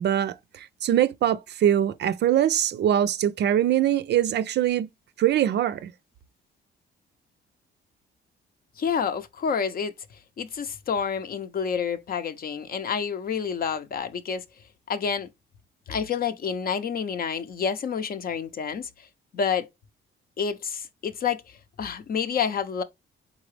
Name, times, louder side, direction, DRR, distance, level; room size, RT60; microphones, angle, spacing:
voice 1, 0.0-4.9 5.2-5.9, right 11 dB, 60° right, 0.4 m, -23 dB
voice 2, 8.8-9.9 10.4-14.4 14.9-15.3 15.9-19.1 19.3-19.7 20.4-22.8, left 6 dB, 50° left, 0.6 m, -29 dB
4.0 x 3.8 x 3.2 m
cardioid pair, 90°, 20 cm